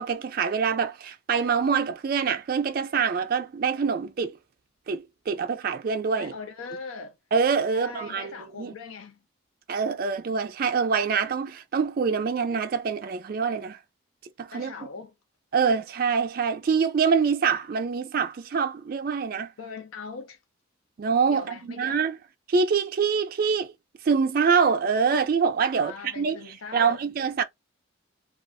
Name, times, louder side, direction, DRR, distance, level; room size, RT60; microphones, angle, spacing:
voice 1, 0.0-4.4 4.9-6.3 7.3-8.7 9.7-13.8 14.4-14.7 15.5-19.5 21.0-22.2 22.5-23.7 24.0-27.4, right 5 dB, 45° right, 0.3 m, -25 dB
voice 2, 6.2-7.2 7.7-9.2 14.5-15.1 19.6-20.4 21.3-22.0 25.7-27.0, left 4 dB, 85° left, 0.6 m, -40 dB
2.4 x 2.3 x 2.2 m
head